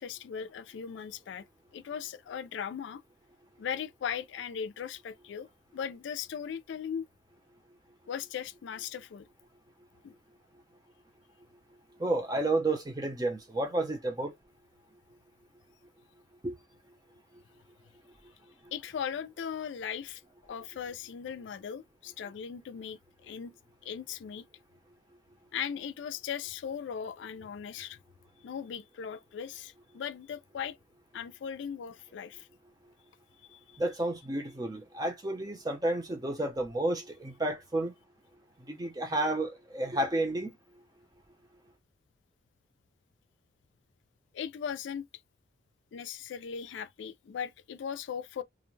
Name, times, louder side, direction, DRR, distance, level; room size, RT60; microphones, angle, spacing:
voice 1, 0.0-1.4 1.7-3.0 3.6-7.1 8.1-9.3 10.0-10.2 18.7-20.2 20.5-23.5 23.8-24.5 25.5-28.0 28.4-30.8 31.1-32.5 33.5-33.8 44.3-45.1 45.9-48.4, left 7 dB, 75° left, 0.3 m, -38 dB
voice 2, 12.0-14.3 16.4-16.5 33.8-37.9 38.7-40.5, right 2 dB, 20° right, 0.7 m, -31 dB
2.5 x 2.1 x 3.1 m
head